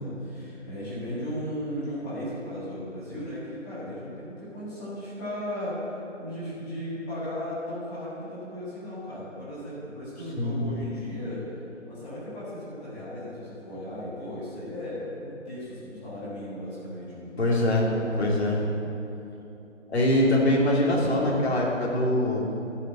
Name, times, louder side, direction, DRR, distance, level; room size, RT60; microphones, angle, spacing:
voice 1, 0.0-5.8 6.2-11.4 11.9-18.4 22.2-22.3, equal, 5° left, -11 dB, 1.8 m, -36 dB
voice 2, 10.4-10.7 17.4-18.6 19.9-22.6, left 1 dB, 55° left, -4 dB, 3.0 m, -23 dB
13.0 x 6.7 x 6.9 m, 2.8 s
figure-of-eight pair, 170°, 37 cm